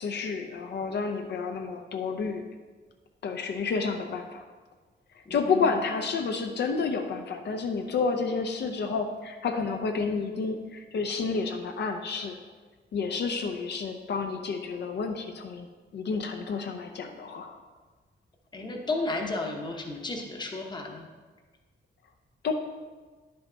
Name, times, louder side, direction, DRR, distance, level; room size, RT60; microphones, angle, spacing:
voice 1, 0.0-2.4 3.2-4.4 5.3-12.4 12.9-15.7 15.9-17.6 22.4-22.5, left 4 dB, 65° left, 4 dB, 0.6 m, -30 dB
voice 2, 5.3-6.0 18.5-21.1, left 2 dB, 25° left, 2 dB, 0.9 m, -33 dB
10.5 x 5.7 x 3.9 m, 1.4 s
wide cardioid pair, 180°, 19 cm